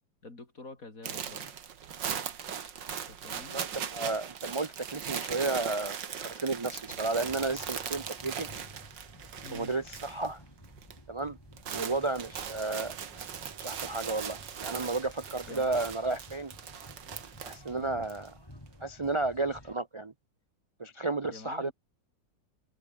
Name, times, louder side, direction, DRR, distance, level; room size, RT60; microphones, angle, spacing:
voice 1, 0.2-1.5 3.1-3.6 9.4-9.7 11.7-12.0 15.5-15.8 17.8-18.1 21.3-21.7, left 3 dB, 50° left, 4.8 m, -47 dB
sound 1, 1.0-10.3 10.6-11.0 11.3-18.3, right 8 dB, 90° right, 2.3 m, -39 dB
voice 2, 3.5-6.0 6.2-8.5 9.5-10.4 11.1-11.4 11.7-12.9 13.6-16.5 17.4-18.3 18.8-20.1 20.8-21.7, right 3 dB, 45° right, 0.3 m, -32 dB
sound 2, 7.1-19.7, left 1 dB, 10° left, 5.7 m, -53 dB
omnidirectional pair, 1.9 m